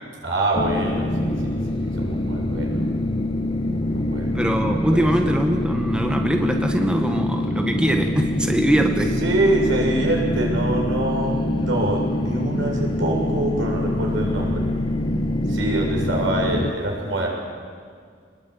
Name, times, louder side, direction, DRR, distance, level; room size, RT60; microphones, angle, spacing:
voice 1, 0.2-2.8 3.9-4.4 4.9-5.3 9.0-14.7 15.5-17.3, right 1 dB, 90° right, 0 dB, 7.3 m, -25 dB
sound 1, 0.6-16.7, left 1 dB, 25° left, 1.3 m, -25 dB
voice 2, 4.3-9.1, equal, 5° right, 3 dB, 1.7 m, -22 dB
26.0 x 21.0 x 8.8 m, 2.1 s
head